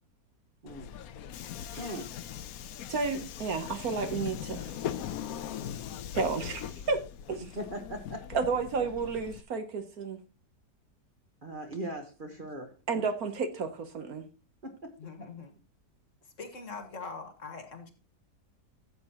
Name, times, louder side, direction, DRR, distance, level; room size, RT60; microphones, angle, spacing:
Subway metro underground, 0.7-9.4, left 9 dB, 70° left, 1.0 m, -40 dB
voice 1, 1.8-2.1 7.4-8.3 11.4-13.0 14.6-15.0, right 1 dB, 35° right, 1.2 m, -40 dB
voice 2, 2.9-4.7 6.1-7.0 7.3-7.5 8.3-10.2 12.9-14.2, right 4 dB, 60° right, 1.4 m, -31 dB
voice 3, 15.0-15.5 16.2-17.9, left 4 dB, 50° left, 1.7 m, -42 dB
13.5 x 7.8 x 2.9 m
omnidirectional pair, 1.8 m